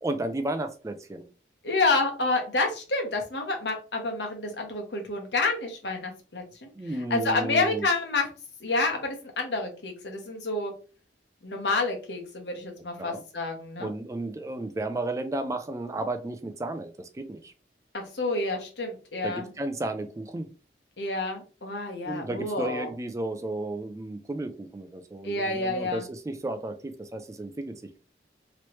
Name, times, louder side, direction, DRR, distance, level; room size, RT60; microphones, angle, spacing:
voice 1, 0.0-1.3 6.8-7.9 13.0-13.2 13.8-17.5 19.2-20.5 22.1-28.0, right 2 dB, 20° right, 8 dB, 0.3 m, -33 dB
voice 2, 1.6-6.7 7.1-8.3 8.6-10.7 11.4-13.9 17.9-19.5 21.0-22.9 25.2-26.0, left 3 dB, 75° left, 2 dB, 1.0 m, -29 dB
3.1 x 3.0 x 3.0 m, 0.35 s
head